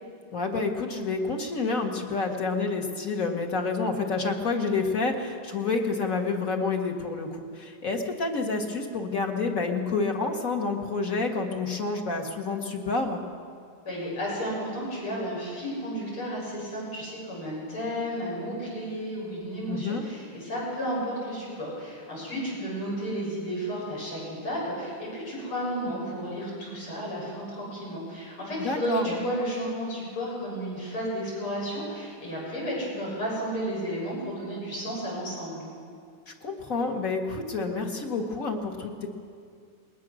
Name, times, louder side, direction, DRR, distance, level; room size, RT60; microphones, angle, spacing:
voice 1, 0.3-13.2 19.7-20.0 28.6-29.2 36.3-39.1, left 3 dB, 40° left, 2 dB, 2.0 m, -29 dB
voice 2, 13.8-35.6, equal, 75° left, -5 dB, 7.9 m, -32 dB
21.0 x 20.0 x 6.3 m, 2.2 s
omnidirectional pair, 2.4 m